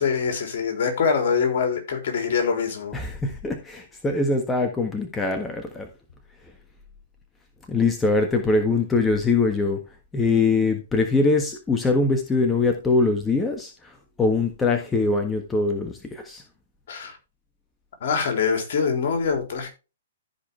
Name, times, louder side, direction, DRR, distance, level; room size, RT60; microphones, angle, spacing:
voice 1, 0.0-3.0 16.9-17.2 18.0-19.7, left 6 dB, 55° left, 3.5 m, -24 dB
voice 2, 2.9-5.9 7.7-9.8 10.1-16.4, left 3 dB, 10° left, 1.4 m, -23 dB
14.5 x 5.2 x 3.4 m
figure-of-eight pair, 120°, 0 cm